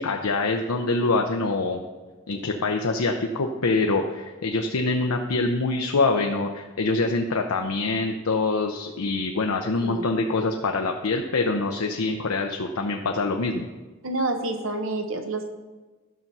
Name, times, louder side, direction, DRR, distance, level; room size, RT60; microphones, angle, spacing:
voice 1, 0.0-1.8 2.3-13.7, left 3 dB, 90° left, 3 dB, 0.7 m, -25 dB
voice 2, 14.0-15.5, right 2 dB, 65° right, 5 dB, 1.1 m, -28 dB
11.5 x 5.9 x 5.5 m, 1.3 s
head